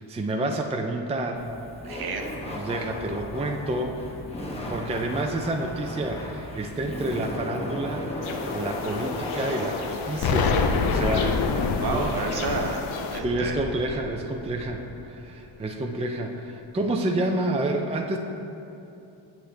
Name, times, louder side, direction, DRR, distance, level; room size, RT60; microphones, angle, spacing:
voice 1, 0.0-1.5 2.5-4.0 4.7-10.5 10.8-12.1 13.2-18.2, right 2 dB, 15° right, 3 dB, 0.5 m, -29 dB
Laughter, 1.3-11.9, left 1 dB, 15° left, 1.2 m, -36 dB
voice 2, 1.8-2.3 11.8-13.6, right 4 dB, 50° right, 3 dB, 1.0 m, -30 dB
sound 1, 8.2-13.2, left 5 dB, 85° left, 0.7 m, -34 dB
Explosion, 10.2-15.1, left 4 dB, 50° left, 0.6 m, -27 dB
8.1 x 6.2 x 3.3 m, 2.8 s
cardioid pair, 65°, 47 cm